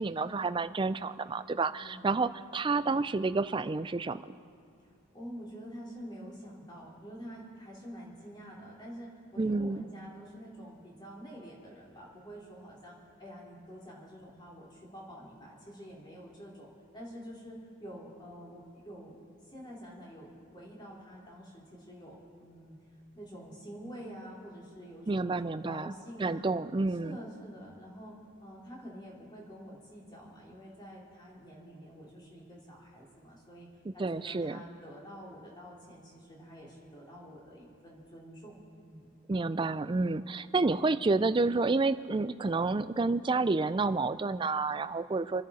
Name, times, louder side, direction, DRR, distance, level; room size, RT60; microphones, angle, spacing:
voice 1, 0.0-4.3 9.4-9.8 25.1-25.9 26.2-27.2 33.9-34.6 39.3-45.4, right 3 dB, 20° right, 14 dB, 0.3 m, -29 dB
voice 2, 1.8-2.1 5.1-16.7 16.9-19.2 19.5-22.8 23.1-26.4 27.0-33.7 33.9-39.1, equal, 20° left, -4 dB, 3.1 m, -47 dB
28.0 x 10.0 x 4.2 m, 2.6 s
head